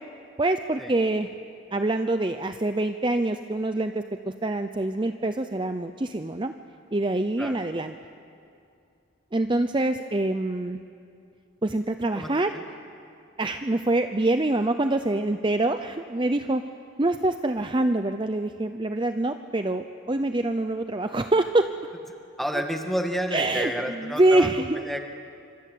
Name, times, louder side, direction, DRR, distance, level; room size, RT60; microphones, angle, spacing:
voice 1, 0.4-1.3 1.7-6.5 6.9-7.9 9.3-10.8 11.6-12.5 13.4-16.6 17.0-21.7 22.5-22.6 23.3-24.8, right 2 dB, 25° right, 8 dB, 0.6 m, -25 dB
voice 2, 12.2-12.6 22.4-25.0, equal, ahead, 3 dB, 1.8 m, -30 dB
26.0 x 26.0 x 8.5 m, 2.5 s
head